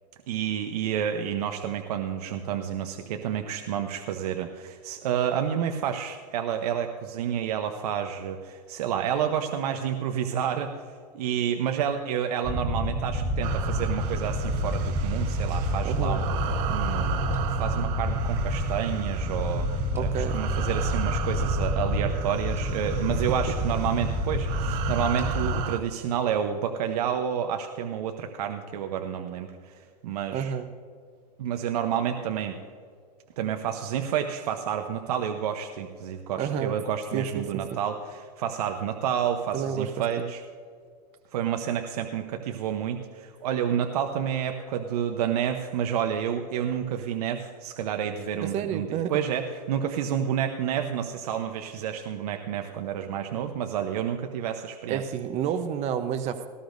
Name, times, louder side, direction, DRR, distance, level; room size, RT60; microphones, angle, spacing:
voice 1, 0.3-10.7 11.1-16.3 16.7-29.7 30.0-30.5 31.4-32.6 33.4-40.4 41.3-55.0, right 9 dB, 70° right, 6 dB, 0.9 m, -29 dB
sound 1, 12.4-25.6, equal, 10° right, 1.6 m, -28 dB
sound 2, 13.4-25.8, right 10 dB, 50° right, 1.2 m, -37 dB
voice 2, 15.8-16.2 19.9-20.4 30.3-30.7 36.4-36.7 37.1-37.2 39.5-39.9 40.2-40.3 48.4-49.1 54.9-56.5, right 8 dB, 35° right, 9 dB, 0.8 m, -29 dB
18.0 x 13.0 x 2.6 m, 2.1 s
hypercardioid pair, 125°, 21 cm